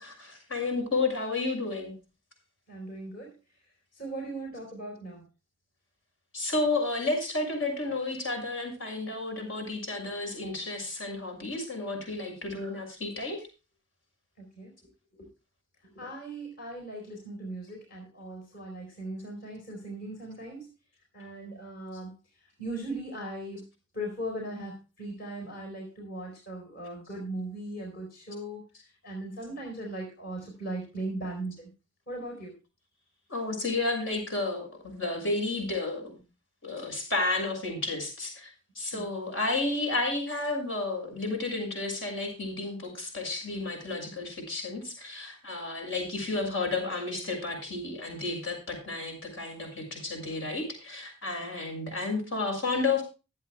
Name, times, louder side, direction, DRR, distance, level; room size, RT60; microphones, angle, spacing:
voice 1, 0.0-1.9 6.3-13.4 33.3-36.2 36.6-38.5 38.7-53.0, left 3 dB, 70° left, 3 dB, 6.4 m, -32 dB
voice 2, 2.7-3.4 3.9-5.2 14.4-14.7 15.2-15.3 15.9-20.7 21.1-22.1 22.6-23.6 23.9-28.6 29.0-31.7 32.1-32.6 38.9-39.1, right 1 dB, 45° left, 0 dB, 4.3 m, -38 dB
24.0 x 8.4 x 2.3 m, 0.30 s
head